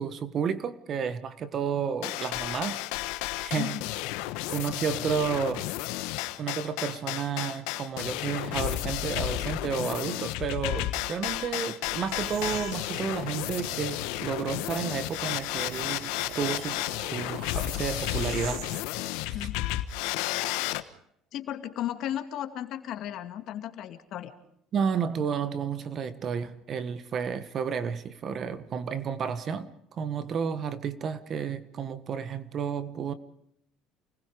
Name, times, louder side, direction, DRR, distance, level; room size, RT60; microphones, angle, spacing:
voice 1, 0.0-3.1 3.4-3.8 4.5-5.7 6.4-18.6 19.2-19.4 24.7-33.1, right 6 dB, 40° right, 1.5 m, -31 dB
sound 1, 2.0-20.8, left 16 dB, 85° left, 1.3 m, -32 dB
voice 2, 3.6-3.9 19.3-19.5 21.3-24.3, left 11 dB, 55° left, 2.4 m, -35 dB
sound 2, 12.0-18.8, right 13 dB, 70° right, 1.1 m, -44 dB
29.0 x 20.5 x 5.1 m
cardioid pair, 135°, 0 cm